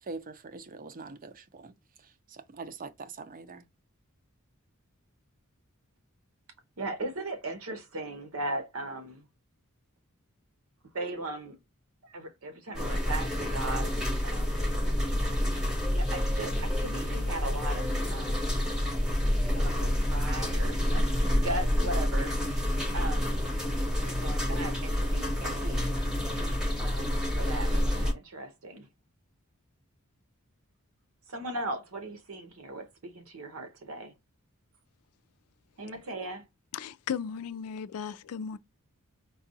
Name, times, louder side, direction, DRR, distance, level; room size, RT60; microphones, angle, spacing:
voice 1, 0.0-1.7 2.0-3.7, right 4 dB, 40° right, 0.5 m, -43 dB
voice 2, 6.8-9.3 10.9-11.6 12.0-13.9 14.2-14.6 15.9-18.5 19.5-21.1 21.4-22.4 22.9-23.3 23.8-25.9 26.8-28.9 31.3-34.1 35.8-36.4, right 2 dB, 70° right, 0.8 m, -38 dB
sound 1, 12.7-28.1, left 1 dB, 5° right, 0.9 m, -28 dB
voice 3, 36.7-38.6, left 7 dB, 85° left, 0.4 m, -36 dB
4.7 x 2.3 x 2.6 m
head